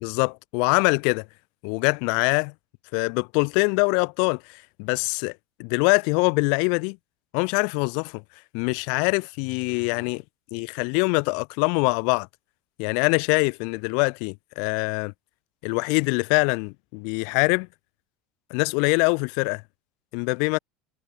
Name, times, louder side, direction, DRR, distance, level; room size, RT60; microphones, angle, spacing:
voice 1, 0.0-1.3 1.6-2.5 2.9-7.0 7.3-8.2 8.5-10.2 10.5-12.3 12.8-15.1 15.6-17.7 18.5-19.6 20.1-20.6, left 40 dB or more, 65° left, 2.0 m, -24 dB
supercardioid pair, 145°, 0 cm